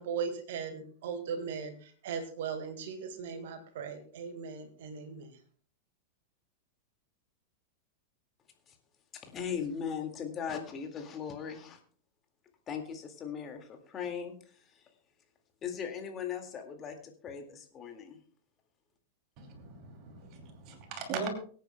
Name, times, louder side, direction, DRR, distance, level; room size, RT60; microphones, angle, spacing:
voice 1, 0.0-5.4, right 6 dB, 55° right, 9 dB, 1.6 m, -38 dB
voice 2, 9.2-11.8 12.7-14.8 15.6-18.2, left 7 dB, 25° left, 5 dB, 2.0 m, -39 dB
voice 3, 19.8-21.3, right 5 dB, 40° right, 4 dB, 2.8 m, -39 dB
23.5 x 9.2 x 2.2 m, 0.44 s
figure-of-eight pair, 90°, 0 cm